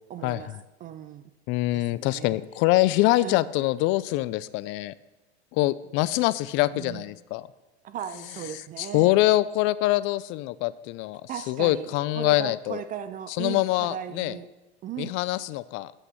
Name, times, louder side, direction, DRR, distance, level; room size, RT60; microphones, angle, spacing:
voice 1, 0.1-0.5 0.8-1.3 1.7-2.4 3.2-3.5 6.7-7.0 7.8-9.1 11.3-14.5 14.8-15.2, right 10 dB, 25° right, 11 dB, 0.4 m, -37 dB
voice 2, 1.5-4.9 5.5-7.5 8.8-12.8 13.4-14.4 15.0-15.9, left 17 dB, 35° left, 18 dB, 0.4 m, -24 dB
8.9 x 8.2 x 5.7 m, 1.1 s
hypercardioid pair, 110°, 34 cm